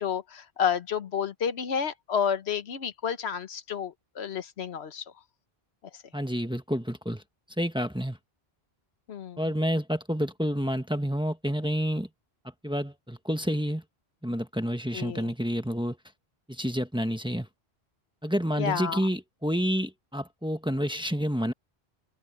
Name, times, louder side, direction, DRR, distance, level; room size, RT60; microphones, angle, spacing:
voice 1, 0.0-5.0 9.1-9.4 14.9-15.3 18.6-19.0, left 7 dB, 80° left, 1.3 m, -30 dB
voice 2, 6.1-7.2 7.6-8.2 9.4-12.1 12.6-13.8 14.2-16.0 16.5-17.5 18.2-21.5, equal, 5° right, 1.2 m, -29 dB
omnidirectional pair, 1.1 m